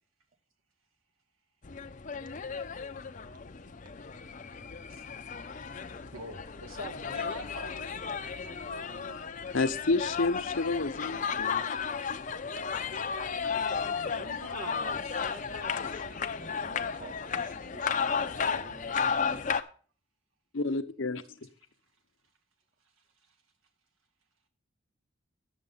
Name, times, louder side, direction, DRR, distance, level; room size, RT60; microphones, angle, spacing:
sound 1, 1.6-19.6, left 6 dB, 40° left, 0.6 m, -34 dB
voice 1, 6.1-9.2 14.0-16.6 23.3-23.4, right 1 dB, 90° right, 4 dB, 2.0 m, -45 dB
voice 2, 9.5-11.6 20.5-21.2, left 3 dB, 70° left, 9 dB, 0.8 m, -29 dB
voice 3, 15.8-19.4, right 2 dB, 40° right, 7 dB, 1.2 m, -51 dB
10.0 x 7.1 x 5.5 m, 0.42 s
head